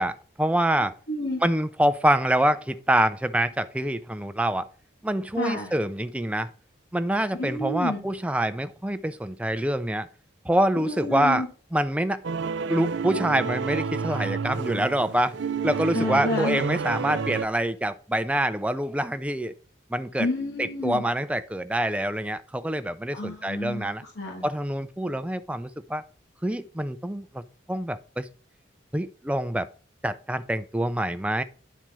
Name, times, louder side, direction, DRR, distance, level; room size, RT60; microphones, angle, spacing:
voice 1, 0.0-0.9 1.4-4.7 5.0-6.5 6.9-10.1 10.4-11.4 11.7-12.2 12.7-15.4 15.6-19.5 19.9-20.3 20.6-24.0 24.4-26.0 26.4-27.4 27.7-28.3 28.9-29.7 30.0-31.4, right 1 dB, 5° right, 0.5 m, -26 dB
voice 2, 1.1-1.4 5.4-5.7 7.4-8.0 10.8-11.5 15.9-16.6 20.2-21.0 23.1-24.4, left 2 dB, 75° left, 3.2 m, -30 dB
sound 1, 12.2-17.5, right 5 dB, 70° right, 0.4 m, -30 dB
10.5 x 4.3 x 6.2 m
head